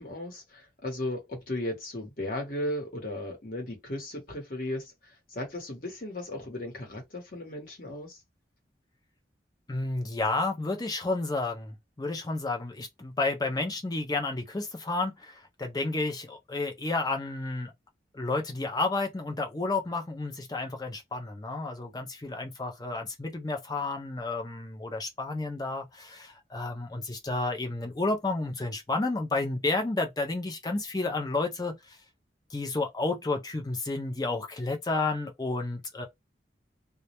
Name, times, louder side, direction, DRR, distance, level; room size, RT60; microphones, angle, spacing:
voice 1, 0.0-4.9 5.3-8.2, left 1 dB, 50° left, 0.9 m, -36 dB
voice 2, 9.7-17.7 18.1-32.0 32.5-36.1, left 3 dB, 20° left, 0.5 m, -31 dB
2.2 x 2.0 x 2.9 m
head